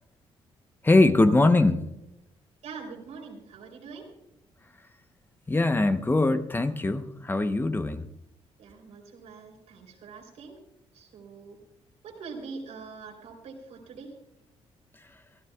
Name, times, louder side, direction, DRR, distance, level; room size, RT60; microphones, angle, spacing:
voice 1, 0.8-1.8 5.5-8.1, left 2 dB, 20° left, 9 dB, 0.9 m, -22 dB
voice 2, 2.6-4.1 8.6-10.6 10.9-11.6 12.0-14.1, right 4 dB, 85° right, 0 dB, 3.6 m, -43 dB
25.5 x 14.0 x 2.4 m, 0.85 s
cardioid pair, 90°, 12 cm